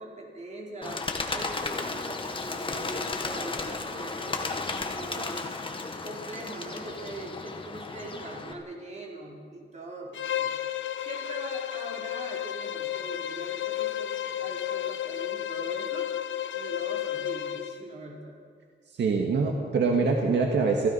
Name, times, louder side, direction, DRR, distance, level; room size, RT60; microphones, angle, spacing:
voice 1, 0.0-5.5 6.0-10.6 11.0-16.1 16.5-18.4, right 2 dB, 35° right, -2 dB, 4.5 m, -41 dB
Bird, 0.8-8.5, left 3 dB, 25° left, 1.7 m, -34 dB
Bowed string instrument, 10.1-17.8, left 11 dB, 80° left, 0.9 m, -32 dB
voice 2, 19.0-20.9, right 4 dB, 65° right, 1 dB, 2.0 m, -24 dB
29.5 x 16.0 x 5.8 m, 2.1 s
wide cardioid pair, 170°, 20 cm